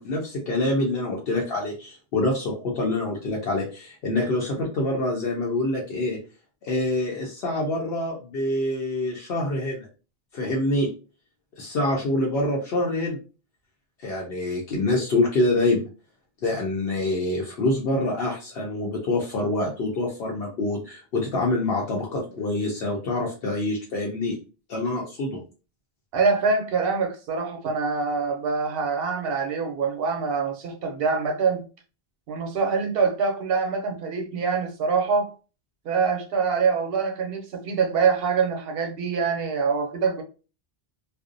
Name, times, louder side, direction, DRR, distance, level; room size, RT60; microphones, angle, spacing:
voice 1, 0.0-6.2 6.6-9.9 10.3-10.9 11.6-13.2 14.0-15.8 16.4-24.4 24.7-25.4, left 2 dB, 75° left, 0.8 m, -26 dB
voice 2, 26.1-31.6 32.3-35.3 35.8-40.2, right 5 dB, 70° right, 0.8 m, -25 dB
2.5 x 2.0 x 2.5 m
omnidirectional pair, 1.0 m